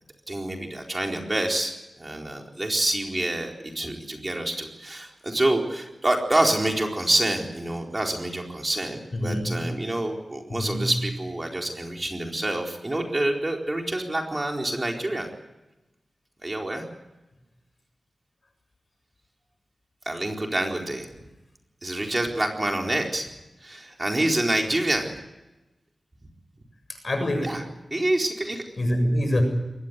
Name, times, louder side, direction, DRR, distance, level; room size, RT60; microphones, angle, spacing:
voice 1, 0.3-15.3 16.4-16.8 20.0-21.1 21.8-23.3 23.6-25.1 27.4-27.6 27.9-28.6, right 1 dB, 25° right, 1 dB, 4.2 m, -27 dB
voice 2, 9.1-9.7 10.5-10.9 26.9-27.6 28.8-29.4, equal, 45° left, 6 dB, 7.3 m, -26 dB
23.0 x 19.5 x 8.2 m, 1.0 s
wide cardioid pair, 80°, 0 cm